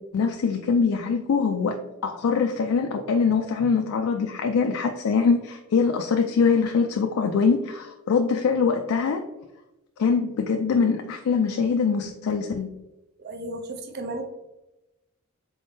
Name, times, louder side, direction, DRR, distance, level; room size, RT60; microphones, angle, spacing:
voice 1, 0.1-1.8 2.0-9.2 10.0-12.7, left 5 dB, 70° left, 4 dB, 0.3 m, -23 dB
voice 2, 13.2-14.2, right 2 dB, 45° right, 5 dB, 0.5 m, -34 dB
3.8 x 3.6 x 2.6 m, 0.97 s
head